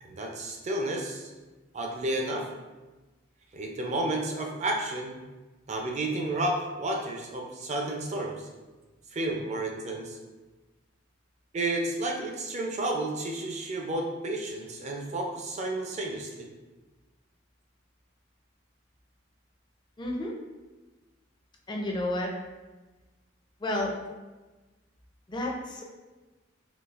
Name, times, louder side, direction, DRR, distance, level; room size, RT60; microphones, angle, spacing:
voice 1, 0.0-1.3 1.7-2.5 3.5-5.2 5.7-8.5 9.1-10.2 11.5-16.5, right 2 dB, 35° right, 1 dB, 0.4 m, -31 dB
voice 2, 20.0-20.3 21.7-22.3 23.6-23.9 25.3-25.8, left 1 dB, 25° left, 0 dB, 0.4 m, -31 dB
3.9 x 2.3 x 2.4 m, 1.2 s
head